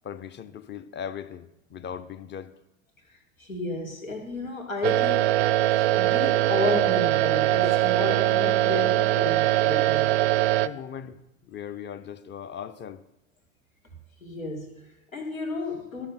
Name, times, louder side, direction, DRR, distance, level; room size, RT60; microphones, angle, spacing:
voice 1, 0.0-2.5 10.6-13.0, left 8 dB, 25° left, 12 dB, 0.8 m, -38 dB
voice 2, 3.1-5.4 6.0-10.2 14.2-16.1, left 2 dB, 85° left, 0 dB, 2.4 m, -32 dB
sound 1, 4.8-10.7, right 15 dB, 55° right, 0.5 m, -22 dB
12.0 x 6.9 x 5.7 m, 0.89 s
figure-of-eight pair, 75°, 39 cm